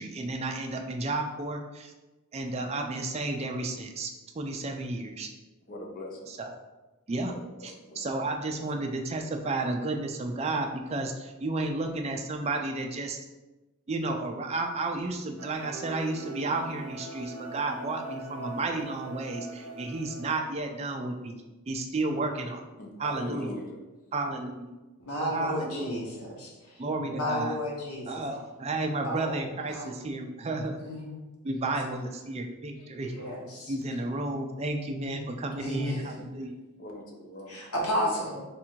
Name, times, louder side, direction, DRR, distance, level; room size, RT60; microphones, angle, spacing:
voice 1, 0.0-1.9 2.3-5.3 6.4-6.5 7.1-7.3 7.6-13.2 13.9-21.4 21.7-22.6 23.0-23.5 24.1-24.7 25.3-26.0 26.8-27.6 28.1-30.8 31.4-33.1 33.7-36.5, right 2 dB, 30° right, 3 dB, 0.4 m, -32 dB
voice 2, 5.7-6.3 7.3-8.0 8.6-8.7 22.8-23.8 25.4-26.1 36.8-37.6 38.0-38.4, left 1 dB, 40° left, 1 dB, 0.6 m, -41 dB
sound 1, 15.4-20.4, right 2 dB, 80° right, 0.7 m, -41 dB
voice 3, 25.0-26.8 27.1-28.2 29.0-30.0 30.8-31.2 33.1-34.0 35.1-36.2 37.5-38.4, equal, 90° left, -3 dB, 1.2 m, -33 dB
3.5 x 2.5 x 4.5 m, 1.1 s
head